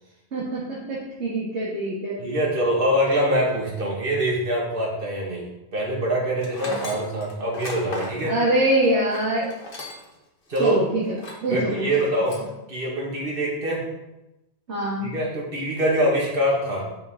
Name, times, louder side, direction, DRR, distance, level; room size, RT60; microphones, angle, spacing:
voice 1, 0.3-2.2 6.6-6.8 8.3-9.5 10.6-11.0 11.4-11.8 14.7-15.1, right 1 dB, 90° right, -6 dB, 1.8 m, -24 dB
voice 2, 2.2-5.4 5.7-8.3 10.5-10.8 11.5-12.4 12.7-13.8 15.0-16.8, right 1 dB, 55° right, -3 dB, 2.0 m, -24 dB
Tools, 6.4-10.2 10.5-10.6 11.1-11.5 11.9-12.5, left 2 dB, 55° left, 1.4 m, -37 dB
9.9 x 4.4 x 3.7 m, 0.95 s
omnidirectional pair, 1.1 m